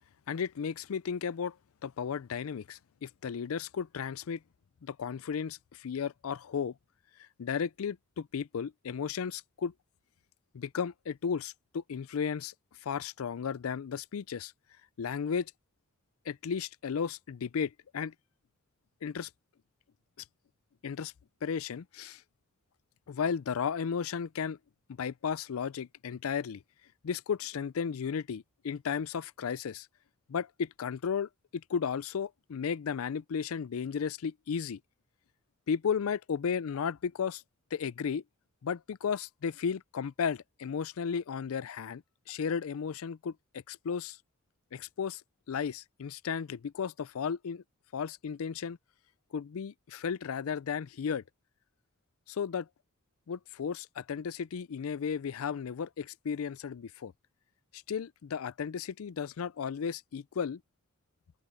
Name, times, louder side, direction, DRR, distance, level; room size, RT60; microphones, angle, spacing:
voice 1, 0.3-1.6 1.8-4.4 4.8-6.7 7.4-9.7 10.5-12.5 12.8-14.5 15.0-15.5 16.3-18.1 19.0-19.3 20.8-21.1 21.4-22.2 23.1-24.6 24.9-26.6 27.0-29.9 30.3-34.8 35.7-37.4 37.7-38.2 38.6-42.0 42.3-44.2 44.7-45.2 45.5-47.6 47.9-48.8 49.3-51.2 52.3-52.7 53.3-57.1 57.7-60.6, left 6 dB, 75° left, 0.4 m, -34 dB
open air
head